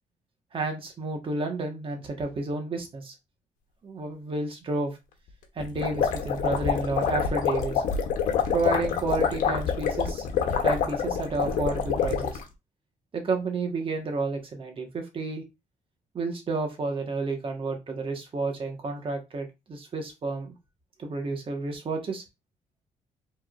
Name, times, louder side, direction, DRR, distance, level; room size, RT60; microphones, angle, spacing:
voice 1, 0.5-3.1 3.8-5.0 5.5-7.8 8.5-10.3 10.6-12.4 13.1-15.4 16.1-20.5 21.0-22.2, right 3 dB, 40° right, 3 dB, 1.4 m, -31 dB
sound 1, 5.6-12.4, left 7 dB, 85° left, 1.0 m, -26 dB
4.9 x 3.7 x 2.5 m, 0.24 s
cardioid pair, 110°, 13 cm